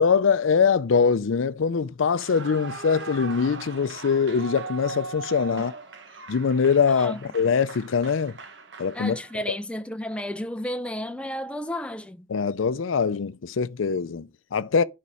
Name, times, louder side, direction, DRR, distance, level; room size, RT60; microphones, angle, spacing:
voice 1, 0.0-5.7 6.3-8.4 8.8-9.2 12.3-14.8, left 6 dB, 90° left, 0.5 m, -23 dB
Clapping / Cheering / Applause, 2.1-9.5, right 4 dB, 65° right, 1.1 m, -40 dB
voice 2, 8.9-12.3, left 1 dB, 5° left, 0.6 m, -32 dB
11.0 x 4.2 x 4.8 m
head